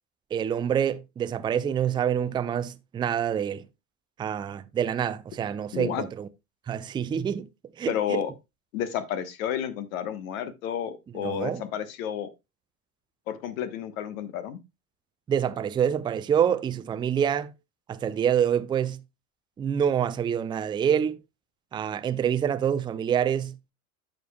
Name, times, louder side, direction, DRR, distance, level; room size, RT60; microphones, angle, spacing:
voice 1, 0.3-3.6 4.2-6.3 6.7-7.5 7.8-8.2 11.2-11.6 15.3-17.5 17.9-19.0 19.6-21.2 21.7-23.6, right 8 dB, 10° right, 0.4 m, -26 dB
voice 2, 5.7-6.0 7.9-8.3 8.7-12.3 13.3-14.6, left 9 dB, 65° left, 1.3 m, -31 dB
14.0 x 5.2 x 2.3 m
figure-of-eight pair, 70°, 45 cm